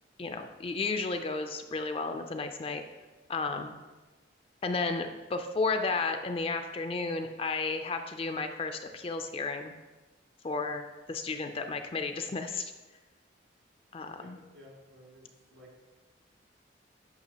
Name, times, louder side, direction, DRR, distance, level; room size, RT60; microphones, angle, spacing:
voice 1, 0.2-2.8 3.3-3.7 4.6-9.7 10.4-12.7 13.9-14.4, left 3 dB, 30° left, 6 dB, 0.4 m, -33 dB
voice 2, 14.0-15.7, equal, 70° right, -3 dB, 2.4 m, -54 dB
8.9 x 5.8 x 2.9 m, 1.2 s
head